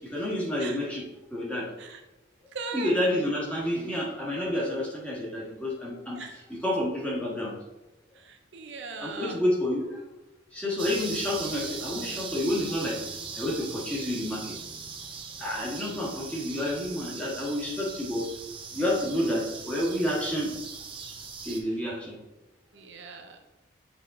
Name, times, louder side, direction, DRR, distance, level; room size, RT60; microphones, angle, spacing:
voice 1, 0.1-1.0 1.3-1.7 2.7-6.2 6.5-7.5 9.0-9.9 10.5-13.0 13.4-14.4 15.4-18.2 18.7-20.5 21.4-22.2, left 1 dB, 5° left, -5 dB, 1.5 m, -29 dB
voice 2, 2.5-3.0 6.1-6.4 8.1-9.4 15.4-15.8 21.5-22.0 22.7-23.4, right 3 dB, 65° right, 5 dB, 0.6 m, -39 dB
sound 1, 10.8-21.6, right 5 dB, 25° right, 0.6 m, -40 dB
7.6 x 3.5 x 3.7 m, 1.0 s
head